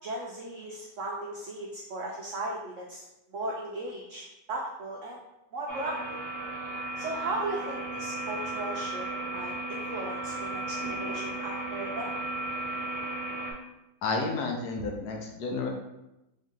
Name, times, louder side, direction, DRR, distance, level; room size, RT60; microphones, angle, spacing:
voice 1, 0.0-3.0 3.3-5.2 5.5-6.2 7.0-12.1, right 2 dB, 85° right, -2 dB, 0.6 m, -37 dB
sound 1, 5.7-13.5, right 2 dB, 5° left, 1.2 m, -35 dB
voice 2, 14.0-15.7, left 3 dB, 70° left, 1 dB, 1.1 m, -31 dB
3.8 x 2.7 x 3.5 m, 0.93 s
omnidirectional pair, 1.9 m